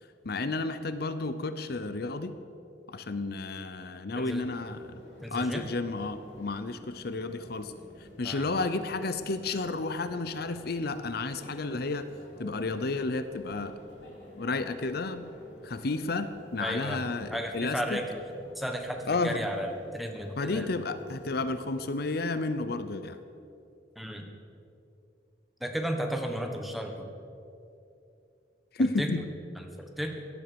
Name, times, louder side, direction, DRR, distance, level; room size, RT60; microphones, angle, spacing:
voice 1, 0.2-2.3 2.9-5.0 5.3-7.7 8.0-12.1 12.4-13.8 14.4-15.3 15.6-18.0 19.1-19.4 20.4-23.2 28.7-29.2, left 3 dB, 60° left, 11 dB, 0.7 m, -32 dB
voice 2, 4.2-4.5 5.2-5.7 8.2-8.5 16.6-17.0 17.3-18.2 18.5-20.7 23.9-24.3 25.6-27.1 29.0-29.1 29.5-30.2, equal, ahead, 3 dB, 1.4 m, -34 dB
sound 1, 4.3-21.9, left 1 dB, 75° left, 4.1 m, -52 dB
17.0 x 11.0 x 6.9 m, 2.6 s
head